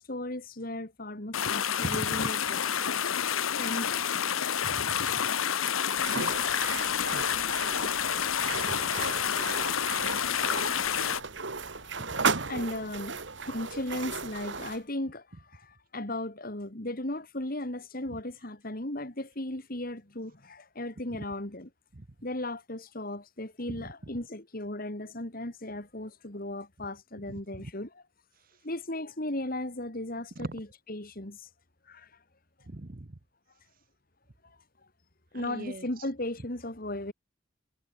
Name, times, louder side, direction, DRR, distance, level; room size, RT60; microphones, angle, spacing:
voice 1, 0.0-2.7 3.6-4.0 11.8-12.0 12.5-13.1 13.5-15.2 15.5-21.7 22.2-27.9 28.6-31.5 31.9-32.1 35.3-37.1, left 1 dB, 45° left, 2.6 m, -36 dB
sound 1, 1.3-11.2, left 8 dB, 85° left, 1.1 m, -29 dB
voice 2, 1.8-2.3 4.6-5.3 8.5-9.1 12.0-12.5 18.1-18.2 21.9-22.1 23.7-23.9 27.3-27.7 28.4-28.6 30.3-30.5 32.7-33.2 35.3-35.9, right 2 dB, 45° right, 1.0 m, -41 dB
sound 2, 6.0-14.8, right 4 dB, 60° right, 2.0 m, -35 dB
head